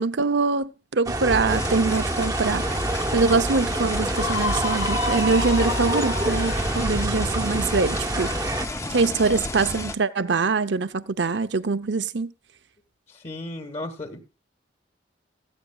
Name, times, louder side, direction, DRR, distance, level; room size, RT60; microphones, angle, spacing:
voice 1, 0.0-2.7 3.1-8.5 8.9-12.3, right 4 dB, 70° right, 0.7 m, -24 dB
sound 1, 1.0-8.7, right 2 dB, 20° right, 0.9 m, -27 dB
sound 2, 1.5-9.9, left 2 dB, 15° left, 0.6 m, -32 dB
Screaming, 4.1-7.1, left 4 dB, 80° left, 0.7 m, -30 dB
voice 2, 13.1-14.2, left 1 dB, 35° left, 1.6 m, -35 dB
17.0 x 14.0 x 2.3 m
head